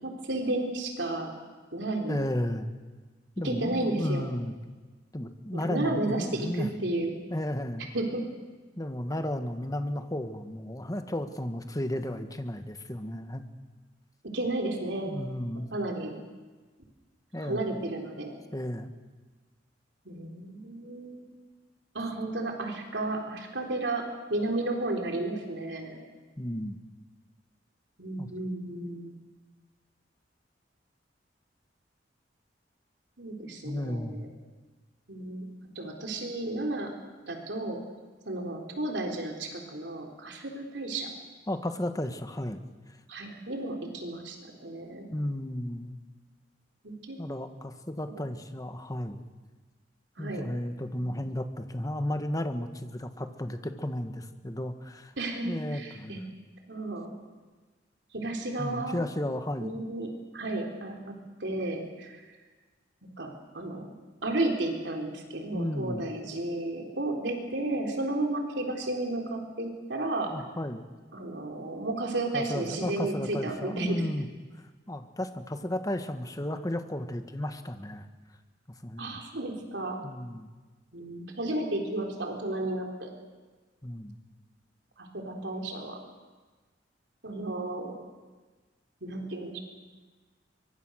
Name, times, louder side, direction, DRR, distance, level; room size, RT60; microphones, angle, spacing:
voice 1, 0.0-1.3 1.7-2.3 3.4-4.3 5.6-7.1 7.9-8.2 14.3-15.1 15.7-16.2 17.4-18.3 20.1-21.3 21.9-24.0 24.3-26.0 28.0-29.2 33.2-34.3 35.1-35.5 35.8-36.9 37.2-37.8 38.3-41.1 43.1-45.1 46.8-47.2 50.2-50.4 51.0-51.2 55.2-56.2 56.7-57.1 58.1-59.1 59.6-61.1 61.4-62.2 63.2-63.3 63.5-63.9 64.2-70.3 71.1-74.0 79.0-80.0 80.9-83.1 85.0-86.0 87.2-87.9 89.0-89.6, right 2 dB, 70° right, 2 dB, 3.8 m, -33 dB
voice 2, 2.1-2.7 3.4-4.6 5.1-6.7 7.3-7.9 8.8-13.4 15.1-15.7 17.3-17.7 18.5-18.9 26.4-26.8 28.2-28.3 33.6-34.2 41.5-42.6 45.1-46.0 47.2-49.2 50.2-55.1 55.4-56.1 58.6-59.8 65.5-66.0 70.3-70.8 72.3-74.3 74.9-78.1 78.8-79.2 80.0-80.5 83.8-84.2, left 1 dB, 20° left, 8 dB, 1.5 m, -33 dB
23.5 x 23.5 x 6.4 m, 1.3 s
head